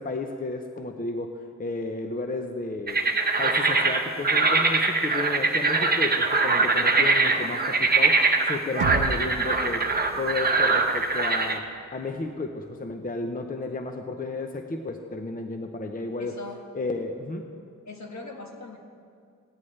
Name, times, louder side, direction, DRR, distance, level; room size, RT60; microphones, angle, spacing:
voice 1, 0.0-3.0 3.4-8.2 8.5-9.9 10.2-11.6 11.9-16.4 16.7-17.5, left 3 dB, 25° left, 5 dB, 0.7 m, -32 dB
sound 1, 2.9-11.6, right 3 dB, 30° right, 1.0 m, -23 dB
sound 2, 8.8-12.7, right 6 dB, 70° right, 0.6 m, -36 dB
voice 2, 16.2-16.6 17.9-18.8, left 2 dB, 60° left, 2 dB, 1.6 m, -40 dB
16.0 x 10.5 x 3.3 m, 2.3 s
cardioid pair, 70°, 32 cm